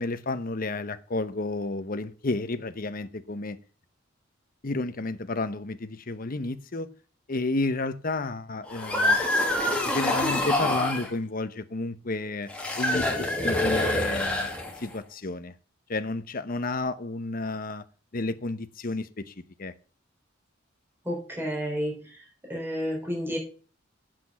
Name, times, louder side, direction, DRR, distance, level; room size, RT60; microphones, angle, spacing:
voice 1, 0.0-3.6 4.6-6.9 7.3-9.2 9.6-12.5 12.8-14.5 14.8-15.5 15.9-17.8 18.1-19.3 19.6-19.7, left 2 dB, 45° left, 11 dB, 0.9 m, -31 dB
sound 1, 8.7-11.1 12.5-14.9, left 1 dB, 5° left, 2.1 m, -26 dB
voice 2, 21.0-22.2 22.5-23.4, equal, 10° right, -1 dB, 3.7 m, -31 dB
8.6 x 7.6 x 6.1 m, 0.38 s
head